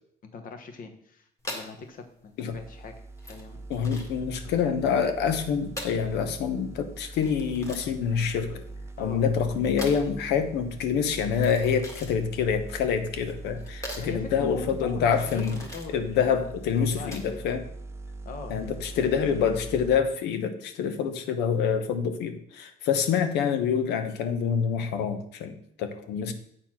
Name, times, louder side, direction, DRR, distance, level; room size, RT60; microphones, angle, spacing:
voice 1, 0.3-2.9 3.3-3.6 9.0-9.2 14.0-16.4 16.7-17.4 18.2-19.4, left 4 dB, 55° left, 6 dB, 1.3 m, -41 dB
sound 1, 1.4-17.5, left 1 dB, 20° left, 1.7 m, -43 dB
sound 2, 2.5-20.0, right 3 dB, 15° right, 0.7 m, -42 dB
voice 2, 3.7-8.6 9.0-15.6 15.9-17.6 18.5-26.3, left 7 dB, 85° left, 8 dB, 1.0 m, -26 dB
7.9 x 4.2 x 5.8 m, 0.69 s
cardioid pair, 110°, 17 cm